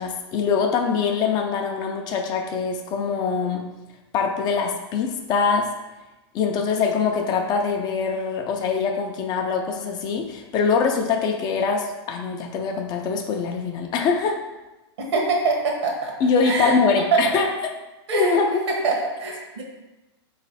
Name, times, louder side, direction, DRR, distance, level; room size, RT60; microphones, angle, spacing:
voice 1, 0.0-3.7 4.1-5.7 6.3-14.4 16.2-17.7 18.1-18.6, left 5 dB, 30° left, 3 dB, 0.5 m, -23 dB
voice 2, 15.0-16.1 16.4-16.8 17.1-17.4 18.1-18.4 18.7-19.6, right 4 dB, 75° right, 0 dB, 1.4 m, -23 dB
3.8 x 3.2 x 4.1 m, 1.0 s
hypercardioid pair, 135°, 14 cm